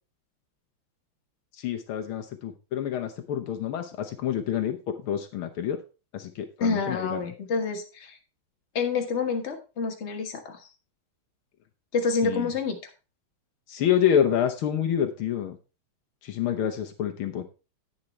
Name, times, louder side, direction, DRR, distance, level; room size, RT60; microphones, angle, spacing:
voice 1, 1.6-5.8 6.1-7.3 12.2-12.5 13.7-15.6 16.2-17.4, left 9 dB, 75° left, 6 dB, 1.7 m, -27 dB
voice 2, 6.6-8.2 8.7-10.6 11.9-12.8, left 4 dB, 35° left, 4 dB, 1.7 m, -28 dB
10.5 x 8.8 x 3.2 m, 0.31 s
omnidirectional pair, 2.4 m